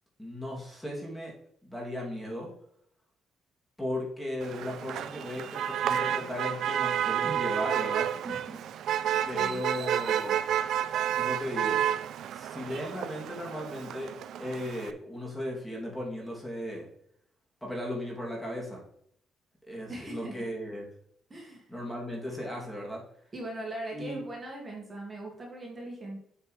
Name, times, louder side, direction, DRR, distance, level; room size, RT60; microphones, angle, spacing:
voice 1, 0.2-1.3 1.6-2.5 3.8-8.1 9.3-10.4 11.1-11.9 12.3-14.1 14.4-16.9 17.6-18.8 19.7-20.9 21.7-23.0 23.9-24.2, left 1 dB, 5° left, -3 dB, 2.7 m, -36 dB
Motor vehicle (road), 4.4-14.9, right 10 dB, 75° right, 0.4 m, -30 dB
voice 2, 8.2-8.6 9.3-9.6 19.9-20.4 21.3-21.7 23.3-26.2, right 1 dB, 25° right, -1 dB, 2.1 m, -40 dB
7.1 x 6.8 x 3.3 m, 0.69 s
cardioid pair, 80°, 0 cm